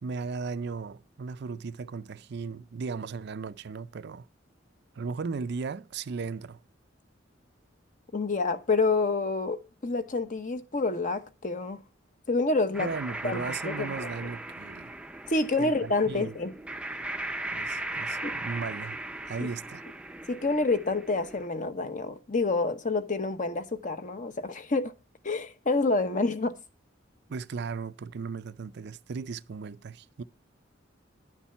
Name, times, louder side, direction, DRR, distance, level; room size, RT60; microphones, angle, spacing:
voice 1, 0.0-4.3 4.9-6.6 12.8-14.9 15.6-16.3 17.5-19.8 27.3-30.2, right 5 dB, 60° right, 0.5 m, -36 dB
voice 2, 8.1-11.8 12.3-12.9 13.2-14.1 15.3-16.5 18.2-18.3 20.3-24.9 25.2-26.6, left 3 dB, 40° left, 1.0 m, -28 dB
sound 1, 12.7-21.5, right 2 dB, 5° right, 0.5 m, -38 dB
11.0 x 7.2 x 5.5 m
head